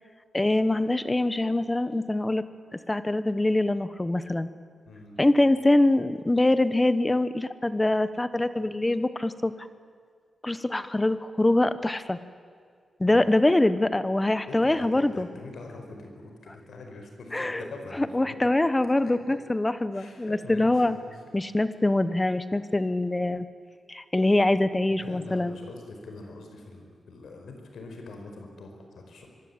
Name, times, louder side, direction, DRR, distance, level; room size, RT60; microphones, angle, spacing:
voice 1, 0.3-2.4 2.9-4.5 5.2-9.5 10.4-12.2 13.0-15.3 17.3-17.6 18.0-21.0 21.3-23.5 23.9-25.6, left 2 dB, 15° left, 13 dB, 1.0 m, -24 dB
voice 2, 4.8-5.2 13.0-13.2 14.5-18.4 19.3-19.4 19.9-21.1 24.9-29.3, left 3 dB, 90° left, 3 dB, 5.0 m, -44 dB
25.0 x 23.0 x 8.8 m, 2.1 s
wide cardioid pair, 165°, 0 cm